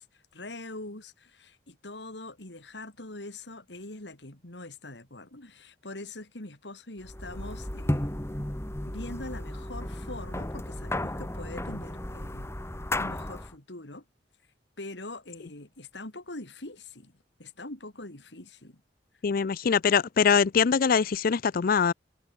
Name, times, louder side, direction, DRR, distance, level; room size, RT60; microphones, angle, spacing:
voice 1, 0.0-8.1 8.8-12.5 13.0-14.0 14.8-17.1 17.4-18.8, left 2 dB, 70° left, 3.2 m, -43 dB
sound 1, 7.0-13.5, left 1 dB, 15° left, 1.6 m, -34 dB
voice 2, 19.2-21.9, left 6 dB, 55° left, 0.5 m, -23 dB
head